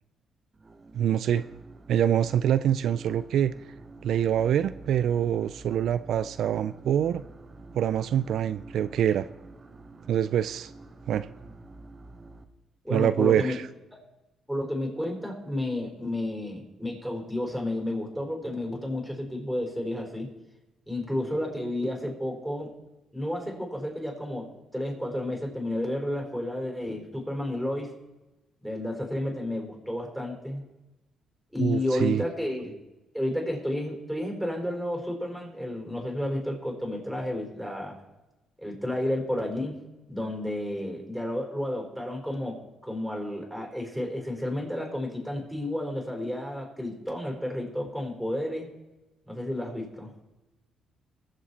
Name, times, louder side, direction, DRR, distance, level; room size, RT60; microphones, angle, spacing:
sound 1, 0.5-12.5, right 2 dB, 30° right, 1.0 m, -48 dB
voice 1, 0.9-1.4 1.9-3.5 4.0-7.2 7.7-9.3 10.1-10.7 11.1-11.3 12.9-13.6 31.6-32.2, right 10 dB, 70° right, 14 dB, 0.3 m, -25 dB
voice 2, 12.8-13.5 14.5-20.3 20.9-22.7 23.1-27.9 28.6-30.6 31.5-32.8 33.1-38.0 38.6-39.8 40.1-48.8 49.3-50.1, left 1 dB, ahead, 0 dB, 4.7 m, -31 dB
21.5 x 7.5 x 4.2 m, 1.0 s
cardioid pair, 90°, 0 cm